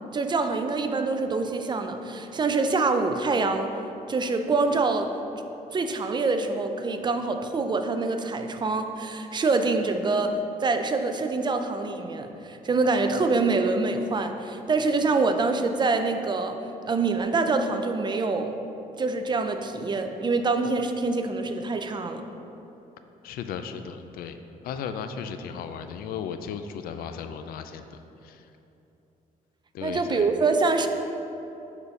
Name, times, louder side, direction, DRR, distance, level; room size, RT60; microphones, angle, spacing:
voice 1, 0.1-3.8 4.1-5.1 5.7-16.6 16.8-18.5 19.0-22.2 29.8-30.9, right 3 dB, 30° right, 6 dB, 0.5 m, -25 dB
voice 2, 23.2-24.4 24.6-28.4 29.7-30.3, left 7 dB, 85° left, 9 dB, 0.4 m, -36 dB
7.0 x 4.2 x 5.2 m, 2.9 s
cardioid pair, 110°, 15 cm